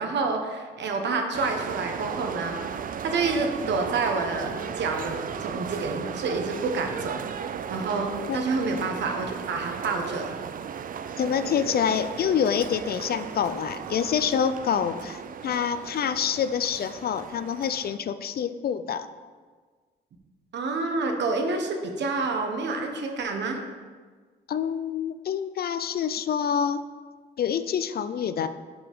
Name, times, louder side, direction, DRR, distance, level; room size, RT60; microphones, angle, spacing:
voice 1, 0.0-2.6 3.0-7.3 7.7-10.4 20.5-23.6, right 3 dB, 60° right, 4 dB, 1.2 m, -28 dB
sound 1, 1.3-18.0, right 7 dB, 45° right, 0.4 m, -36 dB
voice 2, 11.2-19.1 24.5-26.8 27.4-28.5, left 8 dB, 50° left, 12 dB, 0.5 m, -27 dB
10.5 x 5.2 x 3.6 m, 1.5 s
cardioid pair, 90°, 20 cm